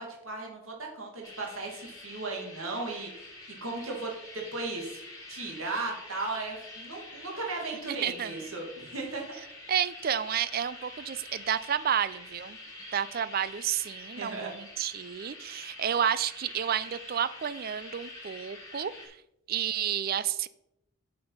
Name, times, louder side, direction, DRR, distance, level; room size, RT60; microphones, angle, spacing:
voice 1, 0.0-3.3 3.6-5.0 5.3-9.3 14.2-14.5, right 3 dB, 75° right, 0 dB, 2.1 m, -36 dB
sound 1, 1.2-19.1, left 2 dB, 15° left, 2.5 m, -46 dB
voice 2, 8.0-8.3 9.7-12.6 12.9-19.2 19.5-20.5, right 9 dB, 45° right, 16 dB, 0.4 m, -31 dB
7.9 x 5.7 x 5.4 m, 0.83 s
head